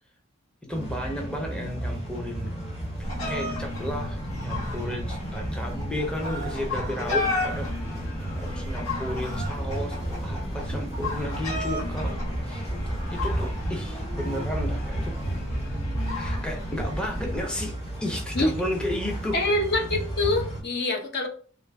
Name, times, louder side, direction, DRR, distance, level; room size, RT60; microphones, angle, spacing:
voice 1, 0.6-2.5 3.0-7.7 8.3-12.2 12.4-15.2 16.1-19.4, left 1 dB, 5° left, 1 dB, 0.5 m, -33 dB
sound 1, 0.7-20.6, right 1 dB, 30° left, 1.4 m, -33 dB
sound 2, 3.0-17.4, left 2 dB, 85° left, 1.7 m, -33 dB
voice 2, 19.3-21.3, left 2 dB, 55° left, 3 dB, 0.6 m, -25 dB
3.1 x 2.5 x 3.3 m, 0.41 s
head